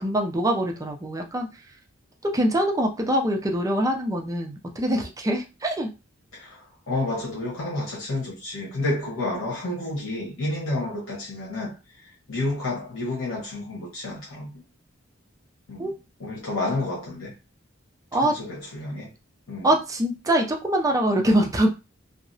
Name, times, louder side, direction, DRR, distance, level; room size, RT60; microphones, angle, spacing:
voice 1, 0.0-1.5 2.2-5.9 15.8-15.9 18.1-18.4 19.6-21.7, right 1 dB, 15° right, 0.4 m, -23 dB
voice 2, 6.3-14.6 15.7-15.9 16.2-17.3 18.2-19.1 19.5-19.7, left 2 dB, 80° left, 1.1 m, -30 dB
2.7 x 2.0 x 2.6 m
head